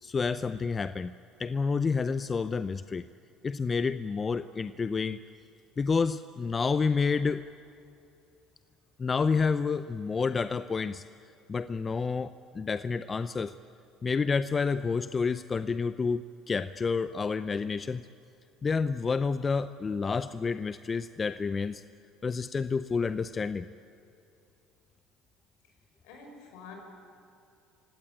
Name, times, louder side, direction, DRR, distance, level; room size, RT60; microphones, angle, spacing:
voice 1, 0.0-1.1 1.4-3.1 3.4-5.2 5.8-7.4 9.0-11.0 11.5-13.6 14.0-16.2 16.5-18.0 18.6-21.8 22.2-23.7, left 5 dB, 30° left, 13 dB, 0.6 m, -29 dB
voice 2, 26.0-26.8, left 5 dB, 75° left, 3 dB, 5.6 m, -47 dB
26.5 x 17.0 x 9.0 m, 2.6 s
hypercardioid pair, 70°, 0 cm